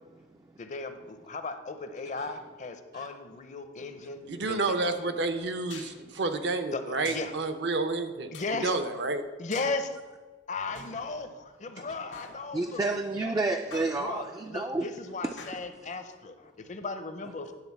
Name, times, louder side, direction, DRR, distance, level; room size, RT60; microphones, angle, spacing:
voice 1, 0.6-5.0 6.7-7.3 8.3-8.7 9.4-9.9 10.5-12.8 13.2-13.3 14.0-17.5, left 3 dB, 40° left, 8 dB, 0.6 m, -36 dB
voice 2, 4.3-8.3 8.6-9.2, right 3 dB, 70° right, 8 dB, 0.7 m, -30 dB
sound 1, 5.7-6.0 7.0-7.4 8.3-8.6 9.5-9.8 10.8-11.6 12.1-12.8 13.7-14.4 15.4-16.0, left 5 dB, 90° left, 1.1 m, -47 dB
voice 3, 12.5-14.9 15.2-15.3, right 2 dB, 20° right, 5 dB, 0.3 m, -30 dB
9.9 x 3.9 x 7.0 m, 1.4 s
head